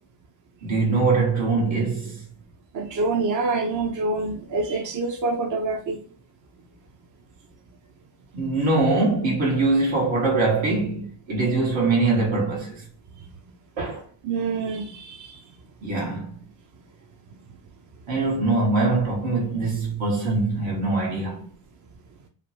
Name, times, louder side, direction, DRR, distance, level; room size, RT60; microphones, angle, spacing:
voice 1, 0.6-2.2 8.3-12.8 13.8-14.0 15.8-16.4 18.1-21.5, right 3 dB, 75° right, 1.5 m, -23 dB
voice 2, 2.7-6.0 14.2-15.4, right 3 dB, 40° right, 0.6 m, -26 dB
3.2 x 2.1 x 2.8 m
supercardioid pair, 55°, 47 cm